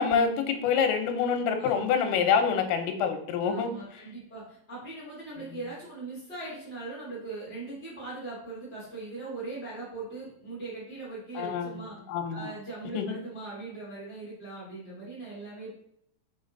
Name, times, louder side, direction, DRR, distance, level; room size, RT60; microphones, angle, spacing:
voice 1, 0.0-3.7 11.4-12.5 13.0-13.2, left 6 dB, 85° left, 6 dB, 3.6 m, -26 dB
voice 2, 3.4-11.9 12.3-15.7, right 3 dB, 25° left, -9 dB, 1.4 m, -40 dB
6.7 x 6.2 x 3.9 m, 0.72 s
omnidirectional pair, 5.8 m